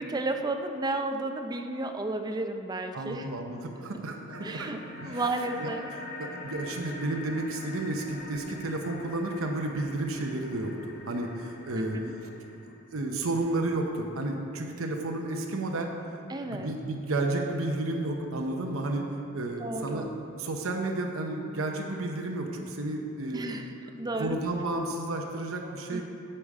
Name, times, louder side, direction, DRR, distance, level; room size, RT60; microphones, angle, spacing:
voice 1, 0.0-3.3 4.4-5.9 11.7-12.1 16.3-16.7 19.6-20.1 23.3-23.7 24.0-24.4 25.9-26.0, right 2 dB, 20° right, 6 dB, 0.5 m, -32 dB
voice 2, 2.9-4.7 5.0-5.2 5.6-5.7 6.2-12.0 12.7-16.2 16.5-19.0 19.3-20.1 20.3-23.6 24.2-26.0, right 2 dB, 80° right, 2 dB, 0.8 m, -32 dB
sound 1, 4.3-13.3, left 2 dB, 50° left, 0.8 m, -44 dB
8.7 x 7.0 x 4.8 m, 2.9 s
head